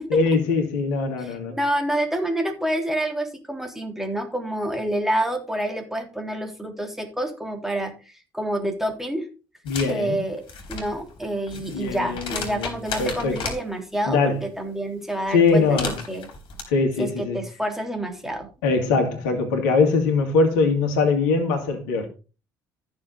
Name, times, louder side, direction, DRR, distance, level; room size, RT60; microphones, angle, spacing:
voice 1, 0.1-1.5 9.7-10.2 11.5-12.7 13.0-13.4 14.1-14.4 15.3-16.0 16.7-17.4 18.6-22.1, left 4 dB, 70° left, 2.4 m, -22 dB
voice 2, 1.2-9.3 9.9-10.4 10.7-16.3 17.0-18.5, right 1 dB, 5° right, 3.4 m, -28 dB
sound 1, 9.7-9.9 10.4-13.6 15.5-16.6, left 5 dB, 50° left, 4.0 m, -34 dB
14.0 x 6.9 x 4.1 m
figure-of-eight pair, 50°, 11 cm